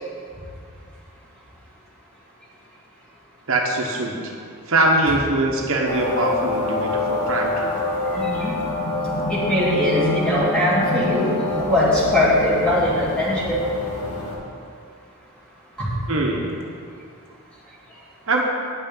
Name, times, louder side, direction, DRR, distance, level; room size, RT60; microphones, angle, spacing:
voice 1, 3.5-4.2 4.7-7.7 16.1-16.5 18.3-18.4, right 2 dB, 65° right, -1 dB, 1.1 m, -22 dB
sound 1, 5.9-14.3, left 2 dB, 75° left, 2.2 m, -26 dB
voice 2, 8.1-8.5 9.3-11.3 11.6-13.6 15.8-15.9, left 1 dB, 5° left, -8 dB, 2.7 m, -21 dB
10.0 x 5.9 x 7.1 m, 2.3 s
head